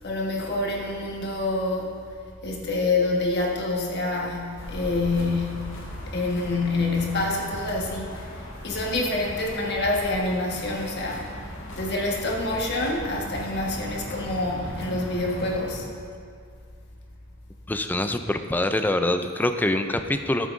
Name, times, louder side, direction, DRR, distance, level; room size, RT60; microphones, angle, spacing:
voice 1, 0.0-1.9 2.4-5.8 6.1-11.3 11.7-15.9, left 2 dB, 55° left, -1 dB, 1.4 m, -27 dB
sound 1, 4.6-15.8, equal, 75° left, 1.7 m, -38 dB
voice 2, 17.7-20.5, left 1 dB, 10° left, 8 dB, 0.3 m, -25 dB
12.0 x 8.3 x 2.6 m, 2.2 s
head